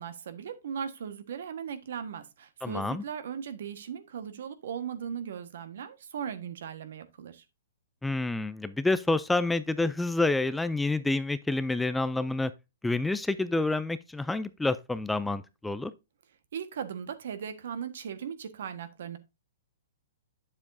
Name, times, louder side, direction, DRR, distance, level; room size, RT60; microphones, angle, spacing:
voice 1, 0.0-7.4 16.5-19.2, right 7 dB, 70° right, 1.4 m, -38 dB
voice 2, 2.6-3.0 8.0-12.5 12.8-15.9, left 2 dB, 5° left, 0.4 m, -28 dB
8.6 x 7.3 x 2.6 m
hypercardioid pair, 140°, 0 cm